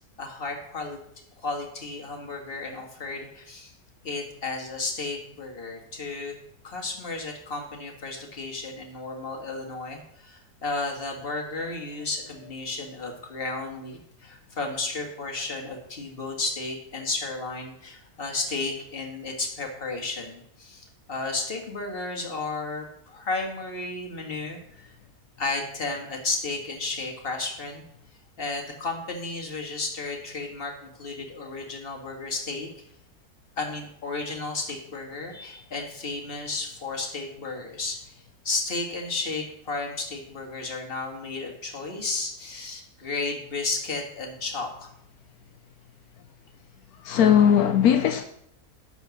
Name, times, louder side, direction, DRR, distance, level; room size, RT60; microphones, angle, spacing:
voice 1, 0.2-1.0 1.4-3.7 4.0-6.3 6.6-24.9 25.4-27.8 28.4-32.7 33.6-44.9, left 3 dB, 40° left, 1 dB, 1.8 m, -33 dB
voice 2, 47.0-48.2, left 9 dB, 80° left, 7 dB, 1.1 m, -18 dB
11.5 x 4.2 x 7.0 m, 0.72 s
omnidirectional pair, 1.6 m